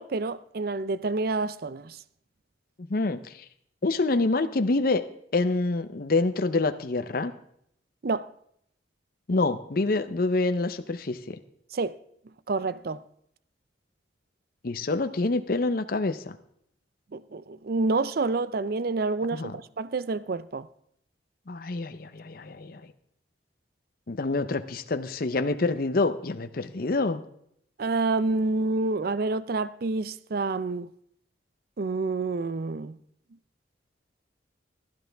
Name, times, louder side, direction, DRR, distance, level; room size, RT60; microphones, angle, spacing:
voice 1, 0.0-2.0 8.0-8.3 11.7-12.0 12.5-13.0 17.1-20.7 27.8-30.9 31.8-33.0, right 3 dB, 55° right, 0.5 m, -28 dB
voice 2, 2.9-3.3 3.8-5.0 5.3-7.3 9.3-11.4 14.6-16.4 19.3-19.5 21.5-22.8 24.1-27.2, left 3 dB, 50° left, 0.7 m, -26 dB
15.5 x 12.5 x 3.4 m
head